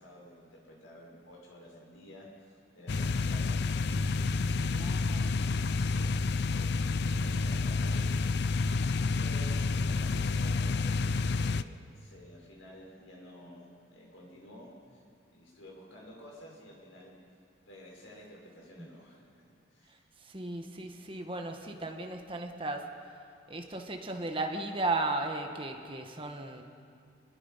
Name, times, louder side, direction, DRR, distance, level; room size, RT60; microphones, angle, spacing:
voice 1, 0.0-6.1 6.5-6.8 7.1-15.0 15.3-17.1 17.7-20.1, left 1 dB, 80° left, -2 dB, 6.0 m, -52 dB
sound 1, 2.9-11.6, left 3 dB, 55° left, 0.5 m, -29 dB
voice 2, 4.6-5.6 18.8-18.9 19.9-22.8 23.5-26.6, right 2 dB, 25° right, 3 dB, 1.6 m, -36 dB
27.5 x 20.5 x 5.8 m, 2.4 s
head